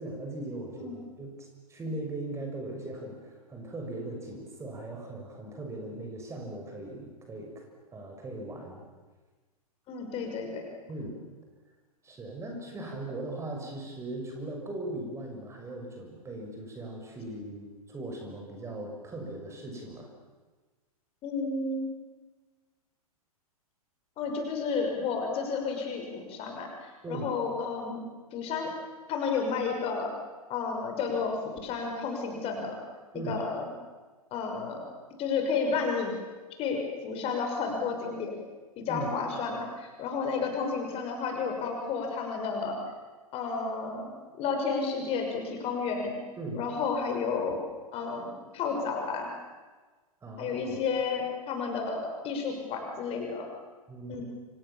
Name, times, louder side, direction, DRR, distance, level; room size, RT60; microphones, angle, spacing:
voice 1, 0.0-7.6 7.9-8.8 10.9-11.2 12.0-20.1 27.0-27.3 33.1-33.4 38.9-39.1 46.4-46.6 50.2-50.8 53.9-54.2, right 2 dB, 15° right, 2 dB, 6.5 m, -39 dB
voice 2, 9.9-10.6 21.2-21.9 24.2-28.7 29.1-30.1 30.5-32.8 33.2-33.7 34.3-34.9 35.2-36.2 36.6-38.4 38.8-42.8 43.3-46.2 46.5-47.6 47.9-49.3 50.4-53.5 54.1-54.2, left 5 dB, 30° left, 3 dB, 6.2 m, -31 dB
30.0 x 27.0 x 7.3 m, 1.3 s
figure-of-eight pair, 105°, 19 cm